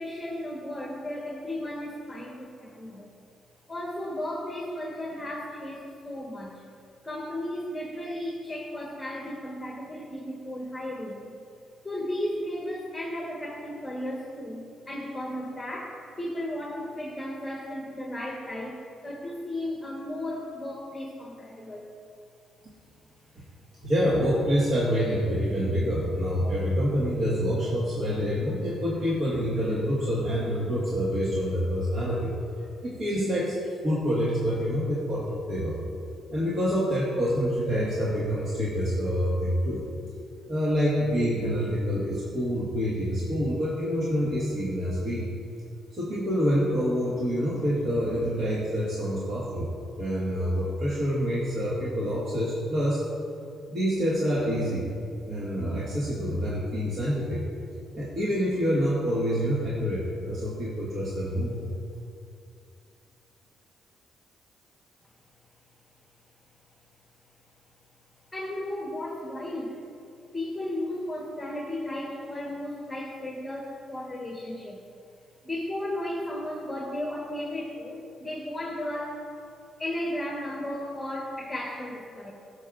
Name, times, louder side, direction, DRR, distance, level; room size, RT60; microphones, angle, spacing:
voice 1, 0.0-3.1 3.7-6.6 7.0-11.3 11.8-18.8 19.0-21.9 68.3-69.8 70.3-74.8 75.4-79.3 79.8-82.3, left 1 dB, 10° left, -3 dB, 1.3 m, -34 dB
voice 2, 23.8-32.3 32.6-35.8 36.3-39.8 40.5-45.3 45.9-49.7 50.0-53.0 53.7-54.8 55.3-57.4 57.9-61.6, equal, 50° right, -7 dB, 1.7 m, -27 dB
14.5 x 6.7 x 2.5 m, 2.5 s
cardioid pair, 90°, 0 cm